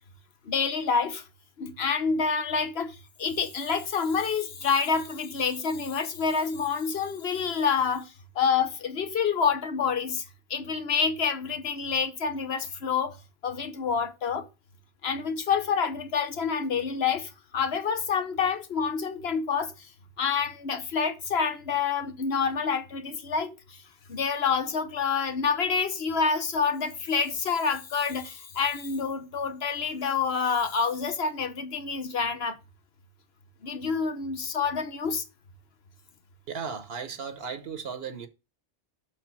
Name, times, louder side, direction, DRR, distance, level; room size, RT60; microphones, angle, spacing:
voice 1, 0.4-1.2 1.6-10.2 10.5-13.2 13.4-14.5 15.0-19.9 20.2-23.8 24.1-32.6 33.6-35.2, left 6 dB, 80° left, 1.2 m, -28 dB
voice 2, 36.5-38.3, right 6 dB, 75° right, 1.0 m, -36 dB
6.3 x 4.4 x 5.8 m
omnidirectional pair, 1.0 m